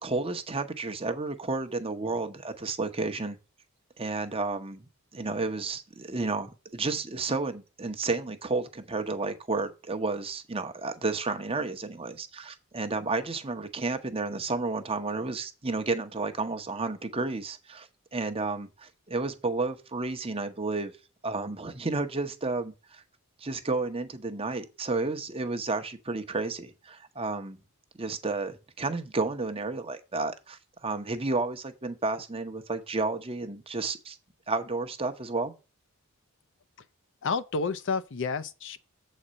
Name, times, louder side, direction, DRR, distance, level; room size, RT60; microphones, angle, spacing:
voice 1, 0.0-3.4 4.0-4.9 5.1-20.9 21.2-23.0 23.4-27.6 28.0-34.2 34.5-35.5, right 3 dB, 25° right, 0.8 m, -31 dB
voice 2, 37.2-38.8, left 4 dB, 55° left, 0.5 m, -30 dB
7.8 x 4.2 x 6.2 m
head